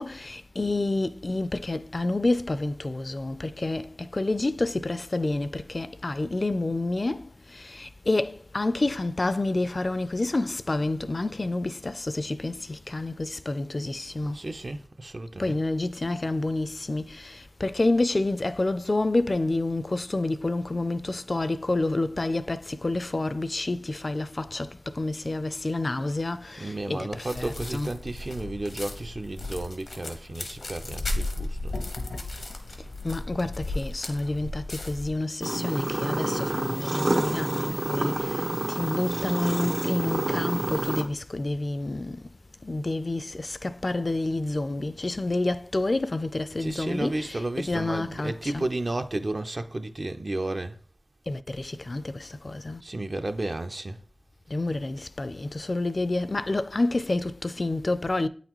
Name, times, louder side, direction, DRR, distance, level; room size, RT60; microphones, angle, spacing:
voice 1, 0.0-14.4 15.4-27.9 33.0-42.3 42.6-48.7 51.3-52.8 54.5-58.3, left 2 dB, 50° left, 0.4 m, -29 dB
voice 2, 14.2-15.6 26.6-31.8 46.6-50.7 52.8-54.0, right 2 dB, 55° right, 0.6 m, -33 dB
sound 1, 27.3-35.1, left 2 dB, 90° left, 0.9 m, -35 dB
sound 2, 35.4-41.0, right 1 dB, 80° right, 1.2 m, -28 dB
8.4 x 4.0 x 3.0 m
cardioid pair, 40°, 0 cm